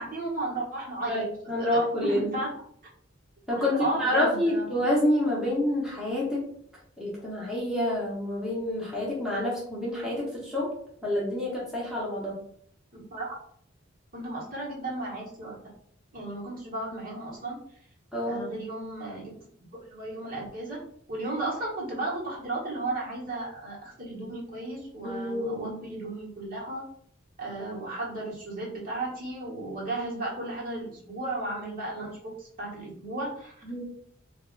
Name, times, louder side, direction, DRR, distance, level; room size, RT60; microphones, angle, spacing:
voice 1, 0.0-1.2 2.1-2.5 3.8-4.7 12.9-13.3 14.1-15.6 16.1-17.6 18.3-19.3 19.9-20.8 21.1-26.8 27.4-33.5, right 2 dB, 45° right, -5 dB, 1.3 m, -34 dB
voice 2, 1.1-2.3 3.5-6.4 7.0-10.7 11.0-12.4 18.1-18.5 25.0-25.8 33.6-33.8, left 1 dB, 5° right, -7 dB, 1.0 m, -28 dB
2.7 x 2.4 x 3.9 m, 0.64 s
head